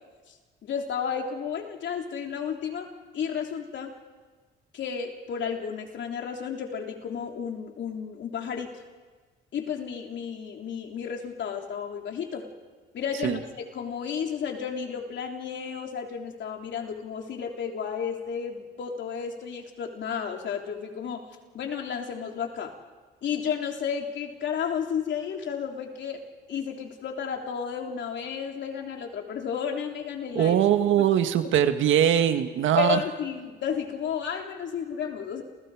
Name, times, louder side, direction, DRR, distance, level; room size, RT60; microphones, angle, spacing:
voice 1, 0.6-3.9 4.7-8.7 9.5-12.5 12.9-13.5 13.7-21.2 21.5-22.7 23.2-26.2 26.5-30.5 31.0-31.1 32.8-35.4, left 7 dB, 65° left, 2 dB, 3.4 m, -32 dB
voice 2, 30.3-33.0, right 10 dB, 80° right, 8 dB, 1.7 m, -21 dB
30.0 x 28.5 x 4.9 m, 1.4 s
cardioid pair, 90°, 20 cm